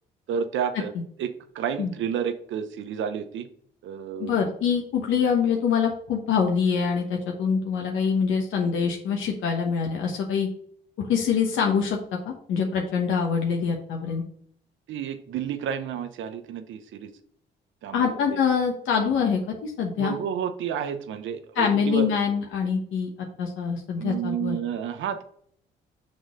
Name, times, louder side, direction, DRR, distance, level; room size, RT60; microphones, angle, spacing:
voice 1, 0.3-0.9 1.2-3.5 3.8-4.4 14.9-17.1 17.8-18.4 20.0-22.1 24.0-25.2, right 8 dB, 75° right, 10 dB, 0.8 m, -30 dB
voice 2, 4.2-10.5 11.0-12.0 12.3-14.2 17.9-20.2 21.6-23.1 23.4-24.6, left 6 dB, 80° left, 1 dB, 1.0 m, -25 dB
6.3 x 3.8 x 4.9 m, 0.62 s
cardioid pair, 90°, 20 cm